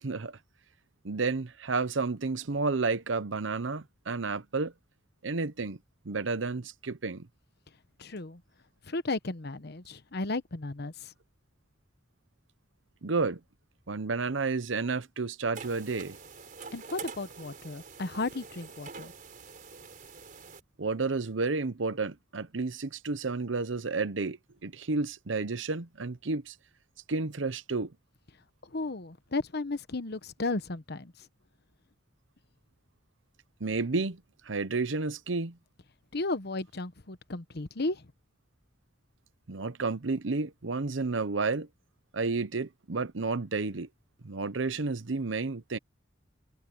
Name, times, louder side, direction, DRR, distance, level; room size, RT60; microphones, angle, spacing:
voice 1, 1.0-4.7 5.2-5.8 6.0-7.3 13.0-13.4 13.9-16.2 20.8-26.5 27.1-27.9 33.6-34.2 34.5-35.6 39.5-41.7 42.1-43.9 44.2-45.8, right 3 dB, 85° right, 0.9 m, -31 dB
voice 2, 8.0-8.4 8.9-11.1 16.7-19.1 28.7-31.1 36.1-38.0, left 2 dB, 60° left, 1.1 m, -34 dB
sound 1, 15.5-20.6, right 5 dB, 50° right, 4.1 m, -46 dB
head